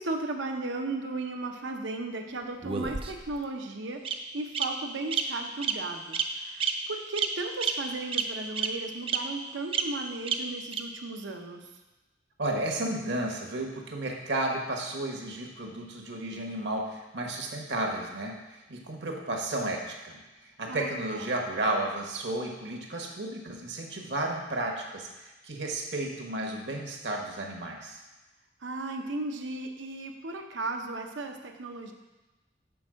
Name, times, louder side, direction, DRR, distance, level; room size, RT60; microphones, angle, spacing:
voice 1, 0.0-11.7 20.7-21.3 28.6-31.9, right 2 dB, 85° right, 4 dB, 0.8 m, -36 dB
Bird vocalization bird call bird song, 2.6-3.4 4.0-4.1 4.5-4.6 5.1-5.2 5.6-5.8 6.1-6.3 6.6-6.7 7.2-7.3 7.6-7.7 8.1-8.2 8.6-8.7 9.1-9.2 9.7-9.8 10.3-10.4 10.7-10.8, right 7 dB, 30° right, 0.5 m, -28 dB
voice 2, 12.4-28.0, right 1 dB, 70° right, 1 dB, 1.2 m, -33 dB
6.1 x 4.3 x 6.2 m, 1.1 s
head